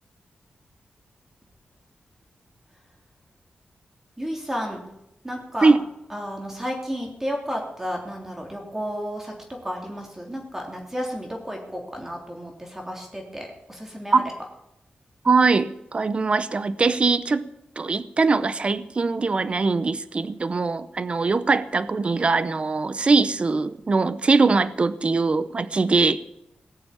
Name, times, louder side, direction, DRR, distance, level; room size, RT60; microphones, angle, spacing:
voice 1, 4.2-4.8 5.2-5.8 6.1-14.3, equal, 10° right, 0 dB, 3.2 m, -32 dB
voice 2, 15.2-17.5 17.8-26.2, right 4 dB, 35° right, 14 dB, 0.7 m, -21 dB
18.5 x 7.0 x 8.8 m, 0.84 s
wide cardioid pair, 130°, 3 cm